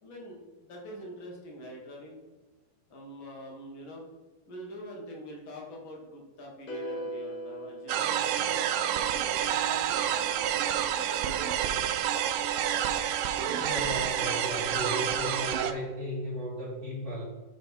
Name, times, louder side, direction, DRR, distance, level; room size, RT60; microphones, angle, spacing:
voice 1, 0.0-2.2 2.9-4.0 4.4-8.8 9.4-12.0, equal, 50° left, -1 dB, 1.6 m, -45 dB
sound 1, 6.7-9.0, right 1 dB, 80° left, 1.1 m, -39 dB
sound 2, 7.9-15.7, right 10 dB, 85° right, 2.6 m, -28 dB
voice 2, 13.4-17.2, left 1 dB, 35° right, -5 dB, 1.2 m, -36 dB
7.1 x 4.1 x 5.3 m, 1.2 s
omnidirectional pair, 4.5 m